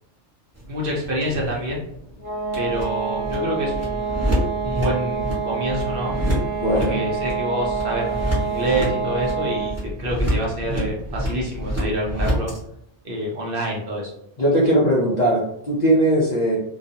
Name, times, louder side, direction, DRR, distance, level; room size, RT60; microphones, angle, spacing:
sound 1, 0.5-12.6, equal, 15° right, 1.1 m, -28 dB
voice 1, 0.7-1.8 2.6-4.3 4.6-6.1 6.7-12.5 13.0-14.1, equal, 55° right, -2 dB, 0.7 m, -27 dB
sound 2, 2.2-9.9, right 6 dB, 10° left, 0.9 m, -27 dB
voice 2, 6.6-7.0 14.4-16.6, right 1 dB, 50° left, -6 dB, 0.5 m, -19 dB
2.4 x 2.3 x 2.7 m, 0.77 s
omnidirectional pair, 1.2 m